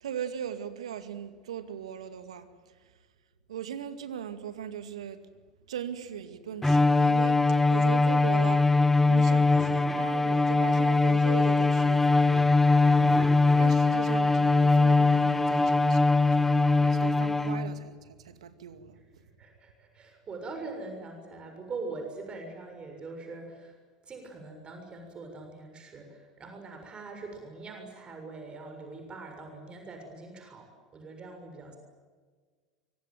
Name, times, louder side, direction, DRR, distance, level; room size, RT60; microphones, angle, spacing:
voice 1, 0.0-2.9 3.5-5.2 5.7-8.7 9.0-16.5 16.8-19.2, right 8 dB, 75° right, 2.2 m, -40 dB
Bowed string instrument, 6.6-17.8, left 3 dB, 5° left, 1.5 m, -22 dB
voice 2, 19.4-23.7 24.1-31.8, right 3 dB, 30° right, 6.9 m, -42 dB
25.0 x 24.5 x 9.3 m
figure-of-eight pair, 75°, 3 cm